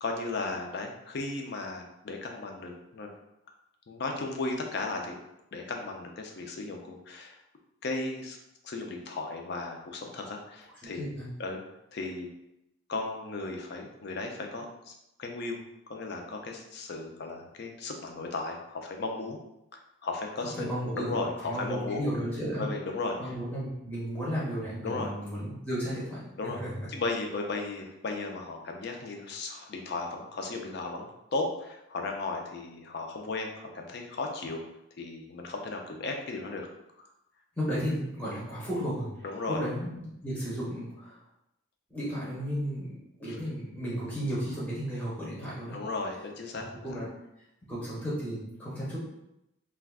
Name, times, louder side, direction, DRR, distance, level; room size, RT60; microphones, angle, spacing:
voice 1, 0.0-3.1 3.9-5.1 5.5-7.4 7.8-8.4 8.6-11.1 11.4-11.6 11.9-12.3 12.9-14.9 15.2-15.6 15.9-19.4 19.7-22.0 22.6-23.3 24.8-25.1 26.4-26.6 26.9-34.6 35.0-36.7 37.0-37.1 39.2-39.6 43.3-43.4 45.7-47.0, left 3 dB, 50° left, 3 dB, 0.4 m, -35 dB
voice 2, 10.8-11.3 20.6-22.7 23.2-26.9 37.6-41.2 41.9-45.8 46.5-47.1 47.7-49.0, equal, 5° left, -8 dB, 0.6 m, -34 dB
2.4 x 2.2 x 3.4 m, 0.86 s
head